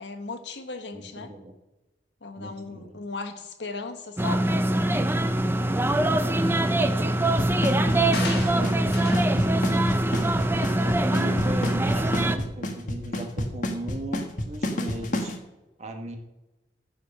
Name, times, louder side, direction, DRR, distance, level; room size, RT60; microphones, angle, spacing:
voice 1, 0.0-1.3 2.2-4.6 7.0-7.1, left 3 dB, 80° left, 7 dB, 1.4 m, -37 dB
voice 2, 0.9-1.5 2.4-3.0 7.0-7.3 7.8-9.4 10.8-15.3 15.8-16.2, right 1 dB, 40° right, 4 dB, 1.6 m, -37 dB
sound 1, 4.2-12.4, right 1 dB, 15° right, 0.5 m, -23 dB
Drum kit / Snare drum / Bass drum, 7.4-15.3, left 1 dB, 45° left, 1.4 m, -28 dB
sound 2, 8.1-9.3 9.7-10.0 10.5-10.7, left 4 dB, 60° left, 1.9 m, -36 dB
15.0 x 5.1 x 6.5 m, 1.0 s
head